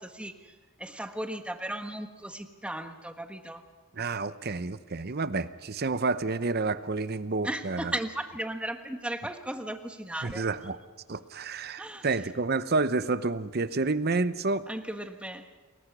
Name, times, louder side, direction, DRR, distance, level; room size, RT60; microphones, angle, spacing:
voice 1, 0.0-3.6 7.4-10.4 11.8-12.1 14.7-15.5, right 1 dB, 5° right, 7 dB, 1.4 m, -36 dB
voice 2, 3.9-7.9 10.2-10.8 11.1-14.6, right 3 dB, 45° right, 14 dB, 0.8 m, -29 dB
28.5 x 21.5 x 6.2 m, 1.3 s
head